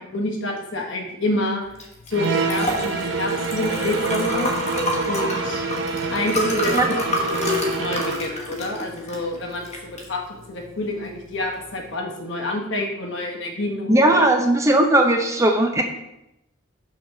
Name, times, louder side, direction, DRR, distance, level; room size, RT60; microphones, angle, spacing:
voice 1, 0.0-1.6 2.1-4.5 5.1-5.6 6.1-6.8 7.3-10.2 10.5-14.2, left 2 dB, 60° left, 1 dB, 1.2 m, -28 dB
Liquid, 1.7-11.9, left 1 dB, 30° left, 1.1 m, -29 dB
sound 1, 2.1-8.3, right 4 dB, 55° right, 0.7 m, -26 dB
voice 2, 13.9-15.8, right 1 dB, 15° right, 3 dB, 0.5 m, -17 dB
6.0 x 4.0 x 6.0 m, 0.87 s
head